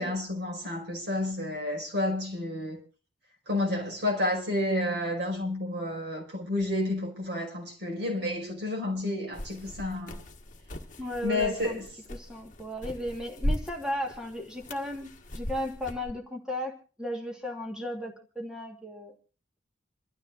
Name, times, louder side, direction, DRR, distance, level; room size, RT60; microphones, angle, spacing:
voice 1, 0.0-2.8 3.5-10.2 11.2-11.8, left 1 dB, 55° right, 5.2 m, -30 dB
sound 1, 9.3-16.1, left 1 dB, 40° left, 1.5 m, -38 dB
voice 2, 11.0-11.8 12.1-19.1, equal, 5° right, 1.5 m, -35 dB
27.5 x 13.0 x 2.5 m
head